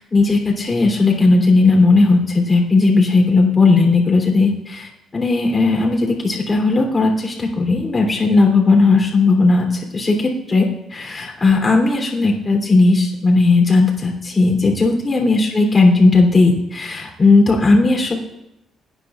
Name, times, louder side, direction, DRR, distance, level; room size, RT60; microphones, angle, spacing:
voice 1, 0.0-18.2, left 3 dB, 30° left, 0 dB, 3.3 m, -16 dB
21.5 x 9.8 x 2.5 m, 0.90 s
cardioid pair, 90°, 0 cm